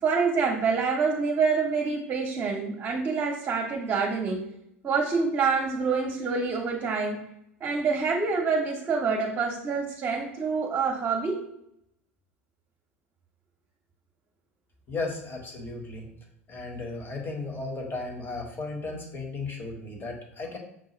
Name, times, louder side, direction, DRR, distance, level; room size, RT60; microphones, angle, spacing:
voice 1, 0.0-4.5 4.8-7.2 7.6-11.4, right 5 dB, 30° right, -1 dB, 0.9 m, -26 dB
voice 2, 14.9-16.0 16.5-20.6, left 3 dB, 30° left, 1 dB, 1.2 m, -35 dB
6.2 x 2.3 x 3.0 m, 0.77 s
hypercardioid pair, 80°, 7 cm